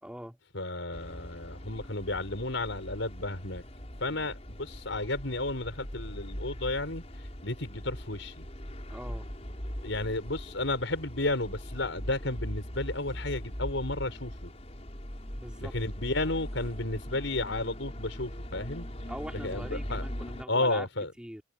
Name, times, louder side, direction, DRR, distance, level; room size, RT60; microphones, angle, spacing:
voice 1, 0.0-0.4 4.1-4.3 8.9-9.3 15.3-15.7 19.1-20.9 21.2-21.4, equal, 5° right, 2.8 m, -42 dB
voice 2, 0.5-3.6 4.0-7.0 7.4-8.5 9.8-14.5 15.6-18.9 19.4-20.0 20.5-21.1, left 2 dB, 80° left, 5.1 m, -32 dB
sound 1, 0.9-20.4, equal, 35° left, 5.7 m, -41 dB
head